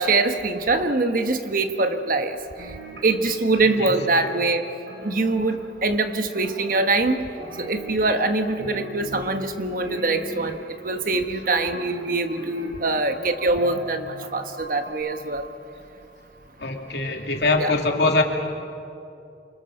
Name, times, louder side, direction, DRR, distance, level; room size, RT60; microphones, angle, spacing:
voice 1, 0.0-2.4 3.0-4.6 5.0-7.2 7.6-10.6 10.8-15.5 17.6-17.7, right 3 dB, 50° right, 7 dB, 1.4 m, -23 dB
sound 1, 2.6-3.3 3.6-5.8 6.4-7.1 7.4-8.3 8.6-9.5 9.8-10.8 11.4-13.3 13.6-14.5 14.9-15.0, equal, 80° right, 5.4 m, -39 dB
voice 2, 16.6-18.2, left 3 dB, 70° left, 2 dB, 2.6 m, -22 dB
28.5 x 24.5 x 6.6 m, 2.6 s
head